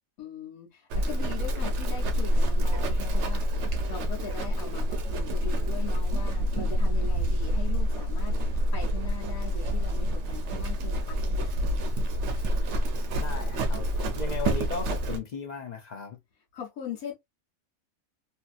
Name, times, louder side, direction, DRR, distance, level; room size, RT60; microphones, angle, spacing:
voice 1, 0.2-11.6 16.5-17.1, left 8 dB, 90° left, 1.3 m, -41 dB
Livestock farm animals working animals, 0.9-15.2, equal, 65° right, 0.8 m, -27 dB
voice 2, 13.1-16.2, left 5 dB, 55° left, 0.4 m, -36 dB
2.8 x 2.6 x 2.4 m
omnidirectional pair, 1.4 m